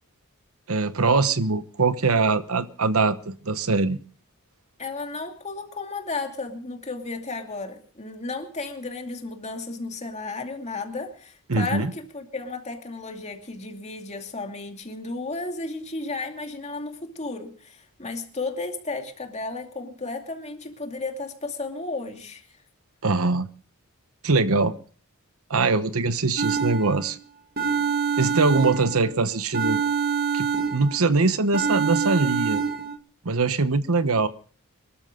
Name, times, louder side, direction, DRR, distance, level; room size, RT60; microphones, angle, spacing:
voice 1, 0.7-4.0 11.5-11.9 23.0-23.5 24.2-24.7 25.5-27.2 28.2-29.8 30.3-32.6 33.2-34.3, right 3 dB, 70° right, 1.0 m, -22 dB
voice 2, 4.8-22.5, left 3 dB, 30° left, 2.5 m, -33 dB
sound 1, 26.4-27.1 27.6-29.1 29.5-31.1 31.5-33.0, right 6 dB, 45° right, 1.9 m, -26 dB
24.0 x 13.5 x 3.8 m
head